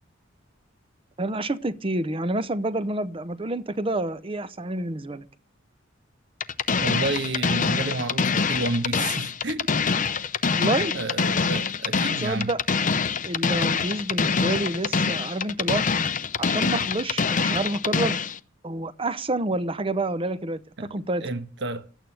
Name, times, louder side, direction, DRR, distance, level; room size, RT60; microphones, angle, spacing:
voice 1, 1.2-5.3 10.5-10.9 12.2-12.6 13.2-15.8 16.4-18.1 18.6-21.2, right 2 dB, 25° right, 0.7 m, -28 dB
sound 1, 6.4-18.4, left 5 dB, 40° left, 0.7 m, -25 dB
voice 2, 6.8-9.8 10.9-12.5 20.8-20.9 21.2-21.9, right 2 dB, 60° right, 1.3 m, -30 dB
12.5 x 9.1 x 9.0 m
head